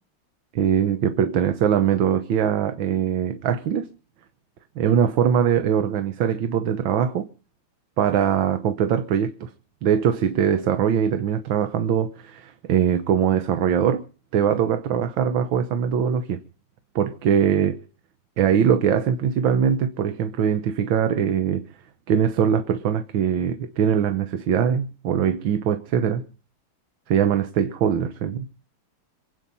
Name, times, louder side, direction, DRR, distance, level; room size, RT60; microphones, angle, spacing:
voice 1, 0.5-3.9 4.8-7.3 8.0-9.5 9.8-14.0 14.3-16.4 16.9-17.8 18.4-21.6 22.1-26.2 27.1-28.5, right 8 dB, 80° right, 1.8 m, -22 dB
26.5 x 9.1 x 5.4 m
omnidirectional pair, 2.1 m